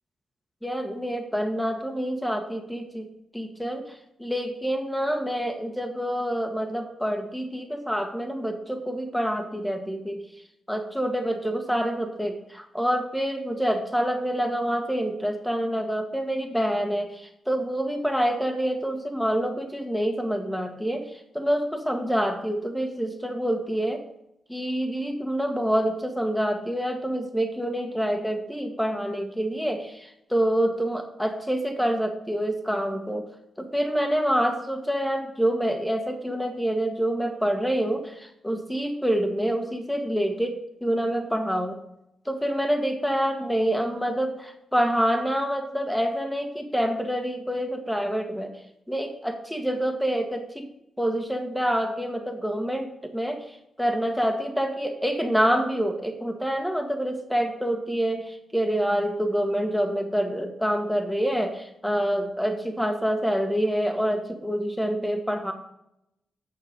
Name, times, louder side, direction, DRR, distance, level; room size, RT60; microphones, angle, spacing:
voice 1, 0.6-3.1 3.3-3.9 4.2-10.2 10.7-21.1 21.3-24.0 24.5-33.3 33.6-41.8 42.3-48.5 48.9-50.7 51.0-65.5, equal, 5° left, 4 dB, 1.8 m, -27 dB
8.8 x 6.5 x 5.3 m, 0.81 s
cardioid pair, 75°, 0 cm